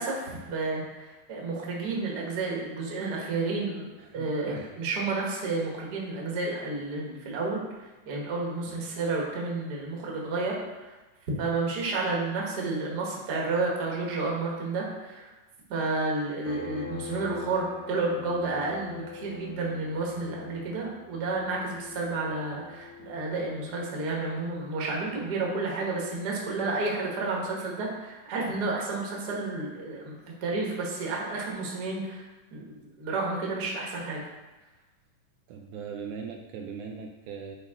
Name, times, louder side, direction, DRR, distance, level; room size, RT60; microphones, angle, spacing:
voice 1, 0.0-10.9 11.4-15.3 15.7-30.1 30.4-32.2 32.5-34.2, right 3 dB, 40° right, -3 dB, 1.6 m, -31 dB
voice 2, 4.0-4.7 8.7-8.8 35.5-37.6, right 6 dB, 80° right, 2 dB, 2.0 m, -40 dB
sound 1, 16.4-26.8, left 5 dB, 80° left, 1.4 m, -45 dB
9.6 x 5.4 x 3.7 m, 1.1 s
omnidirectional pair, 3.7 m